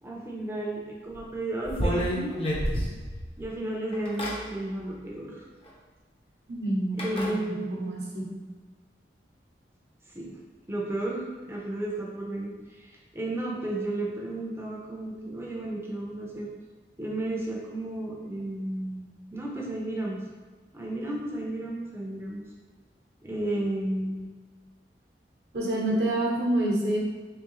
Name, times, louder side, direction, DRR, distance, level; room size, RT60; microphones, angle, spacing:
voice 1, 0.0-2.5 3.4-5.5 6.9-7.9 10.1-10.4 10.7-16.5 17.0-20.2 20.7-22.4 23.2-24.3, right 1 dB, 15° right, -3 dB, 0.5 m, -33 dB
sound 1, 1.1-1.2 1.7-3.4 3.9-4.4 5.7-5.8 7.0-7.3, equal, 30° left, 0.6 m, -28 dB
voice 2, 6.5-8.3 25.5-27.0, right 1 dB, 70° right, -3 dB, 0.9 m, -27 dB
3.6 x 3.5 x 3.0 m, 1.4 s
head